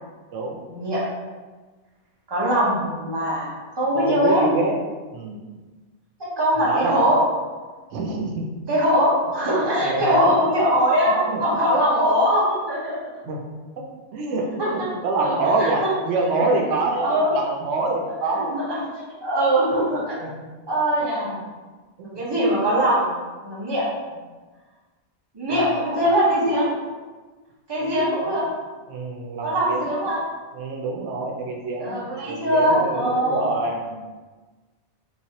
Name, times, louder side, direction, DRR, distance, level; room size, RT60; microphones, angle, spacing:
voice 1, 0.7-1.0 2.3-4.4 6.4-7.2 8.7-13.0 14.6-14.7 15.2-15.9 16.4-16.6 16.9-17.3 18.2-18.8 19.2-20.2 20.7-21.4 22.1-23.1 23.4-24.0 25.3-26.7 27.7-28.4 29.4-30.2 31.8-33.4, equal, 25° right, -7 dB, 0.9 m, -21 dB
voice 2, 3.9-4.7 5.1-5.4 6.6-7.0 7.9-8.5 9.5-9.6 9.8-10.4 11.3-11.4 13.2-13.4 14.1-18.5 20.2-20.3 21.2-21.3 22.0-22.2 25.5-26.0 27.8-28.4 28.9-29.9 30.5-34.0, right 3 dB, 85° right, 0 dB, 0.9 m, -26 dB
3.4 x 3.1 x 2.8 m, 1.3 s
omnidirectional pair, 1.2 m